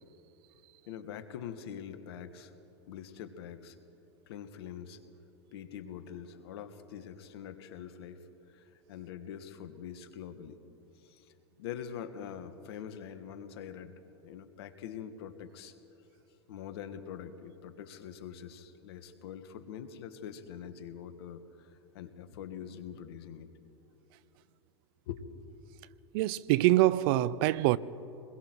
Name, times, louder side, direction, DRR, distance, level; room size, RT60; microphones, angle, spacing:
voice 1, 0.9-2.5 2.9-3.7 4.3-5.0 5.5-10.6 10.9-15.7 16.5-23.5 25.1-25.2, left 8 dB, 70° left, 1.6 m, -44 dB
voice 2, 26.1-27.8, right 16 dB, 55° right, 0.6 m, -25 dB
27.0 x 21.5 x 4.7 m
hypercardioid pair, 105°, 14 cm